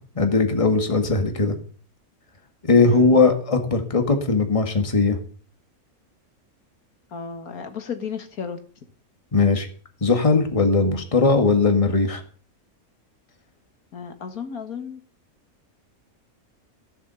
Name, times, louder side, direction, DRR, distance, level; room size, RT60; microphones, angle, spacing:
voice 1, 0.2-1.6 2.6-5.2 9.3-9.7 10.0-12.2, left 3 dB, 20° left, 5 dB, 1.8 m, -19 dB
voice 2, 2.9-3.2 7.1-8.6 13.9-15.0, left 6 dB, 75° left, 7 dB, 1.9 m, -33 dB
15.5 x 7.2 x 6.9 m, 0.43 s
omnidirectional pair, 1.6 m